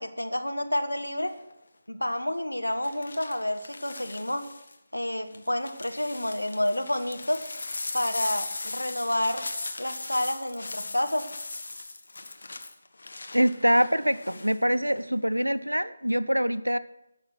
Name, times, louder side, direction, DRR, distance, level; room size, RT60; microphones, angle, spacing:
voice 1, 0.0-1.3 1.9-4.4 4.9-7.4 7.9-9.4 9.8-11.3, left 1 dB, 85° left, 7 dB, 1.3 m, -29 dB
sound 1, 1.2-1.5 2.8-4.8 5.3-14.6 14.9-15.4, left 3 dB, 60° left, 1.2 m, -39 dB
voice 2, 13.3-16.8, equal, 90° right, 14 dB, 0.7 m, -24 dB
12.0 x 6.6 x 7.7 m, 0.86 s
figure-of-eight pair, 155°, 0 cm